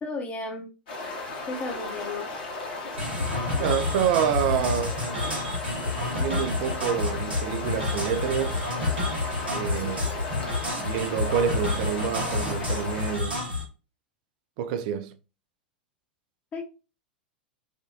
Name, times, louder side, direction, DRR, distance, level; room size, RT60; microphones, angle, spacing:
voice 1, 0.0-0.7 1.5-2.3 16.5-16.6, left 3 dB, 25° left, 0.8 m, -33 dB
sound 1, 0.9-13.2, left 2 dB, 60° left, 1.2 m, -35 dB
sound 2, 3.0-13.6, left 2 dB, 80° right, 1.3 m, -29 dB
voice 2, 3.6-5.1 6.1-8.7 9.5-10.3 10.8-13.4 14.6-15.1, right 9 dB, 50° right, 0.4 m, -28 dB
3.5 x 2.2 x 2.6 m
figure-of-eight pair, 90°, 5 cm